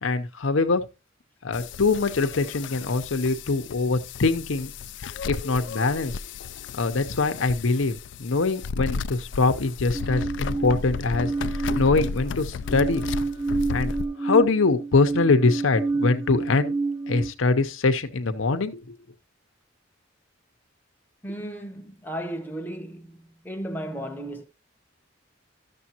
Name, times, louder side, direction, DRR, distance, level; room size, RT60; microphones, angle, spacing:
voice 1, 0.0-0.8 1.4-4.7 5.3-6.2 6.8-13.0 13.7-16.7 17.1-18.9, left 3 dB, 85° left, 0.7 m, -23 dB
sound 1, 1.5-14.1, left 5 dB, 65° left, 0.3 m, -34 dB
sound 2, 9.9-12.3 12.6-17.3, right 3 dB, 10° right, 0.3 m, -29 dB
voice 2, 21.2-24.5, right 1 dB, 10° left, 0.8 m, -35 dB
12.5 x 6.8 x 2.9 m
head